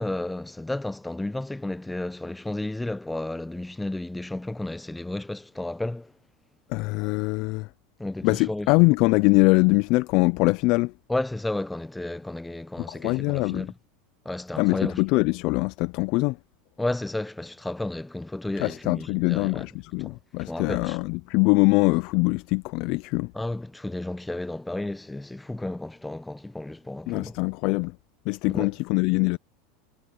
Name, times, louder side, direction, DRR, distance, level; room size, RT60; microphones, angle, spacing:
voice 1, 0.0-6.1 8.0-8.7 11.1-13.7 14.2-15.0 16.8-19.7 20.0-20.1 20.5-21.0 23.3-27.4 28.5-28.7, left 2 dB, 5° left, 0.8 m, -32 dB
voice 2, 6.7-7.7 8.2-10.9 12.9-13.7 14.6-16.4 18.6-23.3 27.1-28.0 28.3-29.4, left 26 dB, 60° left, 0.4 m, -23 dB
supercardioid pair, 125°, 0 cm